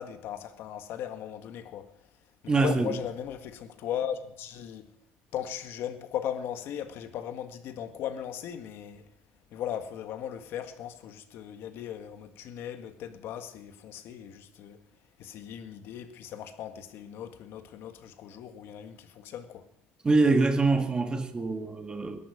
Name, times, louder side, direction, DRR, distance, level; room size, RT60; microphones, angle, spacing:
voice 1, 0.0-1.9 2.4-4.9 5.3-9.0 9.5-14.8 15.2-19.7, left 9 dB, 65° left, 1.8 m, -37 dB
voice 2, 2.5-3.0 20.0-22.2, right 3 dB, 20° right, 1.8 m, -24 dB
21.0 x 11.5 x 5.2 m
cardioid pair, 135°, 4 cm